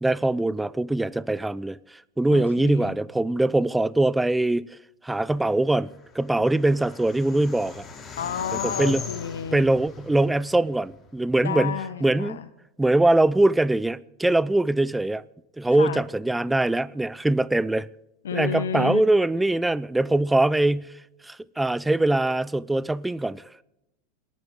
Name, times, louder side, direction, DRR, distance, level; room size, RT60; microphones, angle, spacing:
voice 1, 0.0-4.8 5.0-7.9 8.6-9.0 9.5-12.4 12.8-15.2 15.6-17.9 18.3-20.9 21.2-23.6, right 2 dB, 5° right, 0.6 m, -22 dB
voice 2, 2.3-3.0 8.2-9.7 11.4-12.5 15.8-16.0 18.2-19.0, left 7 dB, 75° left, 1.1 m, -31 dB
sound 1, 5.9-11.3, left 5 dB, 25° left, 4.4 m, -39 dB
29.5 x 11.5 x 3.8 m
hypercardioid pair, 90°, 0 cm